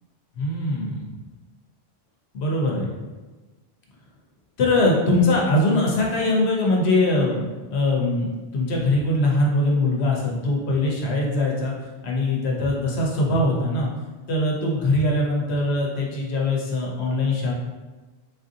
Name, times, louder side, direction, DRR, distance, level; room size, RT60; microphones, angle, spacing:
voice 1, 0.4-1.1 2.3-3.0 4.6-7.4 7.7-11.7 12.0-13.9 14.3-17.5, left 2 dB, 80° left, -2 dB, 1.0 m, -22 dB
3.9 x 2.6 x 2.6 m, 1.3 s
omnidirectional pair, 1.1 m